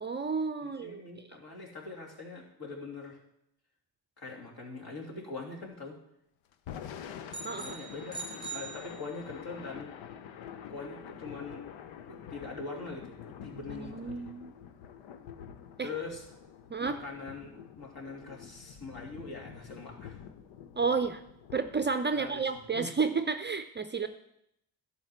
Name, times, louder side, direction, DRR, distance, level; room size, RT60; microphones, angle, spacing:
voice 1, 0.0-1.2 7.4-7.8 13.7-14.5 15.8-15.9 16.7-17.0 20.8-21.2 21.5-24.1, right 5 dB, 25° right, 9 dB, 0.6 m, -31 dB
voice 2, 0.6-3.2 4.2-6.0 7.6-9.9 10.7-11.6 12.0-14.3 15.8-16.2 16.8-20.2 22.1-22.5 22.7-22.9, left 3 dB, 50° left, -2 dB, 3.0 m, -42 dB
Thunder / Rain, 6.5-22.8, left 8 dB, 70° left, 0.8 m, -47 dB
sound 1, 7.3-9.5, right 4 dB, 10° left, 2.2 m, -43 dB
11.5 x 4.1 x 7.9 m, 0.78 s
hypercardioid pair, 45°, 46 cm